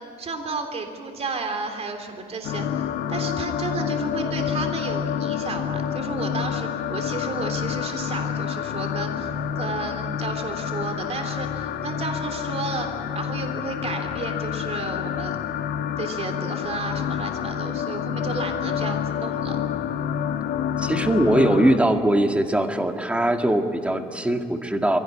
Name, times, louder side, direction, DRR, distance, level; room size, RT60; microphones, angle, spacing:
voice 1, 0.2-12.9 13.1-15.5 16.0-19.6, right 4 dB, 40° right, 5 dB, 3.4 m, -32 dB
sound 1, 2.4-21.8, left 9 dB, 80° left, 1.6 m, -28 dB
voice 2, 20.8-25.0, right 1 dB, 5° right, 5 dB, 2.0 m, -21 dB
23.5 x 17.5 x 9.8 m, 2.4 s
cardioid pair, 110°, 17 cm